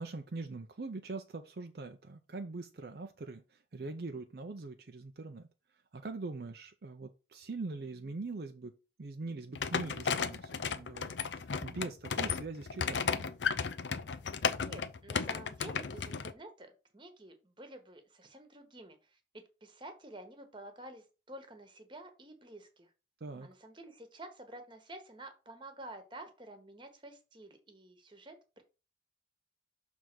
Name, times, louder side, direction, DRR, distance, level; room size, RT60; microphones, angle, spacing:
voice 1, 0.0-5.5 5.9-8.7 9.0-13.3 23.2-23.5, right 3 dB, 55° right, 0.5 m, -42 dB
sound 1, 9.6-16.3, left 6 dB, 75° left, 0.6 m, -34 dB
voice 2, 14.6-22.9 23.4-28.6, right 1 dB, 25° right, 1.2 m, -50 dB
6.4 x 3.5 x 6.1 m
head